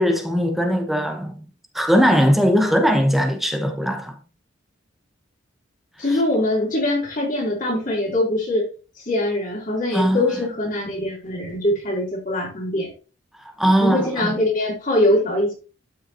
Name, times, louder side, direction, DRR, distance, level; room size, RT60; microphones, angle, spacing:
voice 1, 0.0-1.4 1.7-4.1 9.9-10.2 13.6-14.3, equal, ahead, 1.1 m, -19 dB
voice 2, 6.0-8.7 9.1-12.9 13.6-15.5, left 1 dB, 40° left, 3.6 m, -22 dB
12.0 x 5.5 x 3.0 m
head